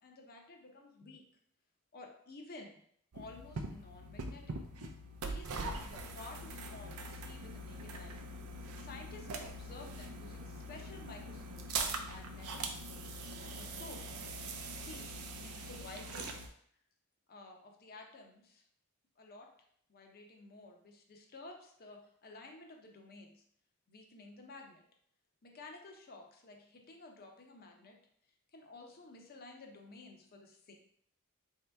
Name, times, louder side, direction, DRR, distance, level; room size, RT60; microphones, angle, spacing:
voice 1, 0.0-1.2 1.9-2.8 3.1-4.6 5.2-8.2 8.6-14.2 14.8-16.4 17.3-18.6 19.2-19.5 19.9-23.4 23.9-24.8 25.4-28.0 28.5-30.7, left 2 dB, 45° left, 2 dB, 0.7 m, -53 dB
sound 1, 3.1-16.5, right 2 dB, 75° right, 0.5 m, -42 dB
4.1 x 2.8 x 3.4 m, 0.65 s
head